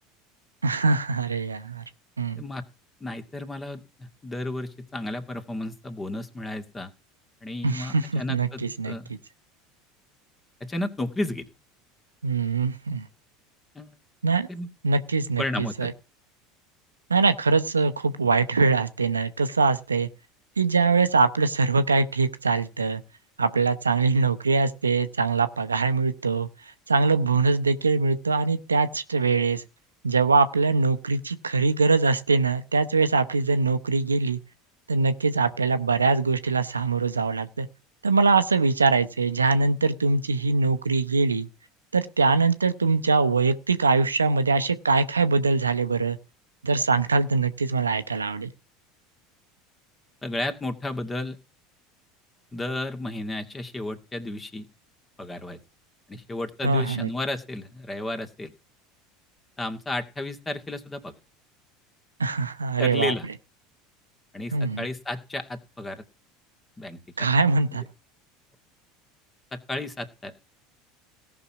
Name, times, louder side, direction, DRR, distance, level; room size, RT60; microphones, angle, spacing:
voice 1, 0.6-1.8 2.2-2.4 7.6-8.9 12.2-13.0 14.2-14.5 14.8-15.9 17.1-20.1 20.6-23.0 23.4-26.5 26.9-29.6 30.0-34.4 34.9-37.7 38.0-41.5 41.9-46.2 46.6-48.5 56.6-57.1 62.2-63.1 64.5-64.8 67.2-67.8, right 4 dB, 85° right, 0.8 m, -23 dB
voice 2, 3.0-6.9 7.4-9.1 10.6-11.5 13.7-13.9 14.5-14.7 15.4-15.9 50.2-51.4 52.5-54.7 55.2-55.6 56.1-58.5 59.6-61.2 62.8-63.3 64.3-66.0 66.8-67.3 67.7-67.8 69.5-70.3, left 2 dB, 20° left, 2.2 m, -33 dB
17.0 x 6.0 x 6.1 m
figure-of-eight pair, 75°, 0 cm